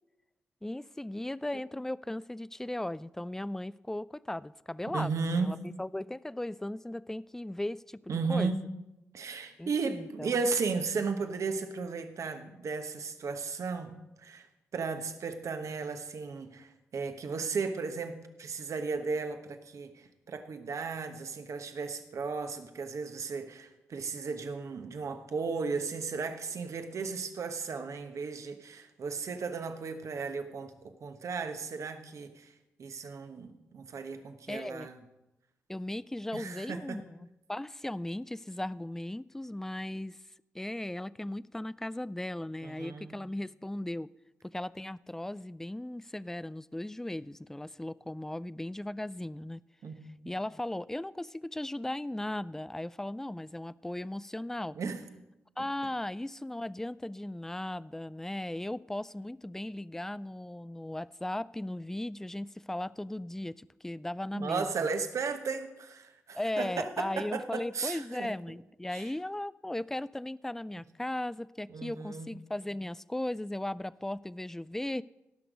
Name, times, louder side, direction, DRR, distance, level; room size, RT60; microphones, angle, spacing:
voice 1, 0.6-8.5 9.6-10.3 34.5-34.9 35.7-37.0 37.5-40.2 40.5-44.1 44.4-49.6 50.3-54.8 55.6-64.9 66.3-75.0, left 1 dB, 5° left, 0.3 m, -37 dB
voice 2, 4.9-5.5 8.1-8.6 9.1-14.5 14.7-32.5 32.8-35.0 36.3-37.0 42.6-43.2 49.8-50.0 54.7-55.0 64.3-68.3 68.9-69.1 71.7-72.3, right 4 dB, 60° right, 1.1 m, -35 dB
17.5 x 6.1 x 5.1 m
hypercardioid pair, 40°, 6 cm